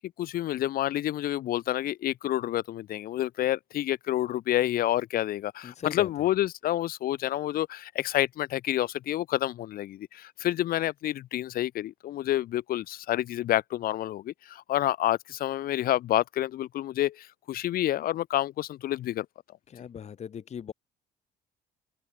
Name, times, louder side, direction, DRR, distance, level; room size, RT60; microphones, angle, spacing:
voice 1, 0.2-19.3, left 13 dB, 60° left, 0.7 m, -28 dB
voice 2, 5.6-6.3 19.7-20.7, left 8 dB, 40° left, 1.5 m, -39 dB
cardioid pair, 110°, 17 cm